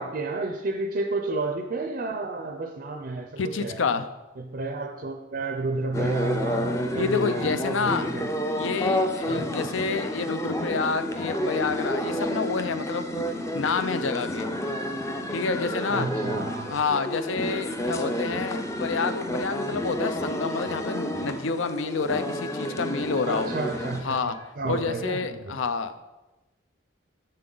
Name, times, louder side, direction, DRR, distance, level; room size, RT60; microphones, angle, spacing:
voice 1, 0.0-3.8 4.4-8.3 9.3-9.4 15.9-16.8 23.3-24.2 24.6-25.6, right 3 dB, 45° right, 4 dB, 0.5 m, -31 dB
voice 2, 3.4-4.1 7.0-8.1 8.6-13.2 13.5-14.5 15.3-16.1 16.7-23.5 24.0-24.4 24.6-25.9, left 4 dB, 80° left, 11 dB, 0.5 m, -28 dB
sound 1, 5.9-24.0, equal, 15° left, 0.5 m, -30 dB
sound 2, 10.5-12.4 16.5-18.4 22.5-24.4, right 2 dB, 45° left, 2.9 m, -45 dB
7.4 x 6.7 x 3.9 m, 1.0 s
head